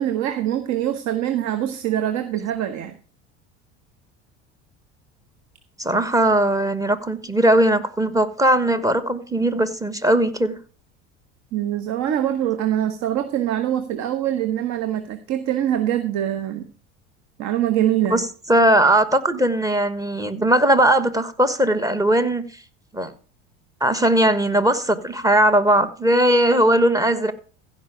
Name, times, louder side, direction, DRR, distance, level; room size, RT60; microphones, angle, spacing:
voice 1, 0.0-2.9 11.5-16.7 17.4-18.3, right 11 dB, 55° right, 9 dB, 1.2 m, -24 dB
voice 2, 5.8-10.6 18.1-22.4 22.9-23.1 23.8-27.3, right 1 dB, 10° right, 11 dB, 1.3 m, -19 dB
15.5 x 5.6 x 5.0 m, 0.38 s
hypercardioid pair, 85°, 33 cm